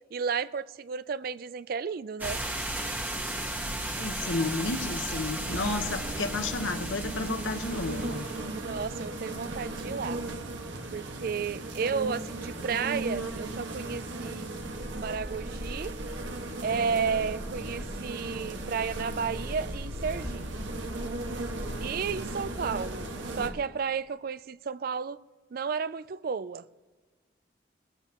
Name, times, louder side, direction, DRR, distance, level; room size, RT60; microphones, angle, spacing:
voice 1, 0.1-2.4 8.5-10.2 10.9-14.5 14.9-15.9 16.6-20.7 21.8-25.2 25.5-26.6, right 6 dB, 50° right, 0.4 m, -32 dB
sound 1, 2.2-8.4, right 1 dB, 10° right, 1.2 m, -35 dB
voice 2, 3.6-8.2, left 3 dB, 90° left, 1.2 m, -32 dB
sound 2, 5.4-23.5, right 2 dB, 75° right, 1.6 m, -36 dB
22.0 x 15.5 x 3.0 m
head